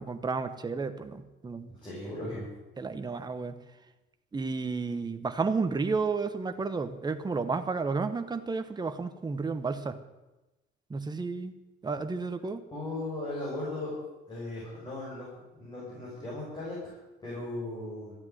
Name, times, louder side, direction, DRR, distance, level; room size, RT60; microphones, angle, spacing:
voice 1, 0.0-1.7 2.8-3.6 4.3-10.0 10.9-11.5 11.8-12.6, right 4 dB, 20° right, 9 dB, 1.2 m, -32 dB
voice 2, 1.7-2.5 12.7-14.0 14.3-16.9 17.2-18.1, left 2 dB, 20° left, -7 dB, 6.4 m, -37 dB
14.5 x 9.5 x 9.4 m, 1.0 s
cardioid pair, 145°, 21 cm